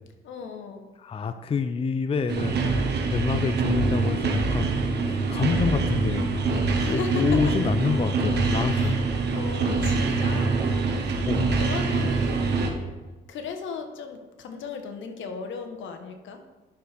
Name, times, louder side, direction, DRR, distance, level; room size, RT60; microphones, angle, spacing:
voice 1, 0.2-0.8 3.2-3.5 6.8-7.5 8.7-9.0 9.3-10.7 10.9-12.5 13.3-16.4, left 5 dB, 75° left, 6 dB, 1.1 m, -37 dB
voice 2, 1.0-6.4 6.8-9.0 11.2-11.5, left 5 dB, 30° left, 10 dB, 0.4 m, -27 dB
sound 1, 2.3-12.7, right 3 dB, 60° right, 1.3 m, -25 dB
10.0 x 6.4 x 3.4 m, 1.2 s
cardioid pair, 90°, 20 cm